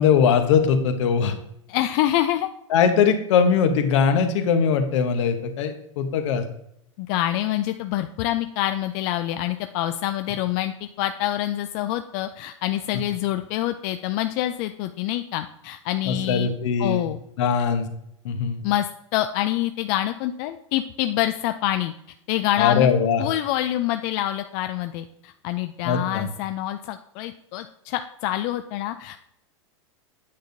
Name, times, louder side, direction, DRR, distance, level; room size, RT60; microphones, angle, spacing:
voice 1, 0.0-1.3 2.7-6.4 16.1-17.1 17.4-17.9 18.2-18.6 22.6-23.3 25.8-26.2, left 6 dB, 70° left, 8 dB, 0.9 m, -21 dB
voice 2, 1.7-2.5 7.0-16.5 16.8-17.2 18.6-21.9 22.3-22.9 23.2-29.2, left 13 dB, 50° left, 8 dB, 0.4 m, -26 dB
8.7 x 5.1 x 2.7 m, 0.75 s
hypercardioid pair, 110°, 16 cm